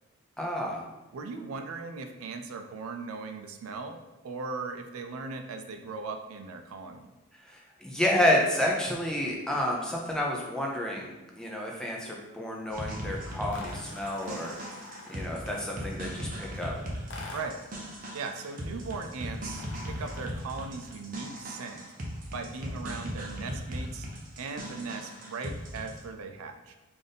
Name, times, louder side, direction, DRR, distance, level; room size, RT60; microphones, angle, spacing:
voice 1, 0.4-0.8 7.5-14.5 15.1-16.7, left 1 dB, 5° left, -2 dB, 0.4 m, -30 dB
voice 2, 1.1-7.1 17.3-17.6 18.1-21.9 22.3-24.1 24.4-26.7, right 4 dB, 85° right, 6 dB, 0.4 m, -38 dB
sound 1, 12.7-26.0, equal, 40° right, 0.6 m, -38 dB
sound 2, 13.5-15.5 17.1-17.7 19.5-20.5, left 3 dB, 60° left, 0.6 m, -46 dB
3.4 x 2.5 x 3.9 m, 1.1 s
head